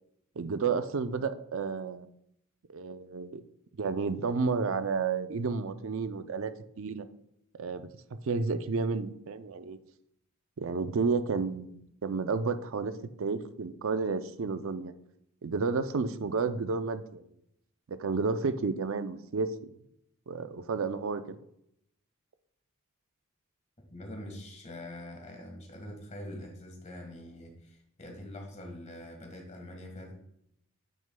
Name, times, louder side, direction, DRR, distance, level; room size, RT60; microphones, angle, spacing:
voice 1, 0.4-2.1 2.7-3.4 3.8-7.1 7.5-9.8 10.6-12.9 13.2-14.9 15.4-17.2 17.9-19.7 20.3-21.2, right 4 dB, 65° right, 11 dB, 0.5 m, -31 dB
voice 2, 23.9-30.1, left 1 dB, 35° left, 2 dB, 1.6 m, -44 dB
9.3 x 6.2 x 2.2 m, 0.76 s
head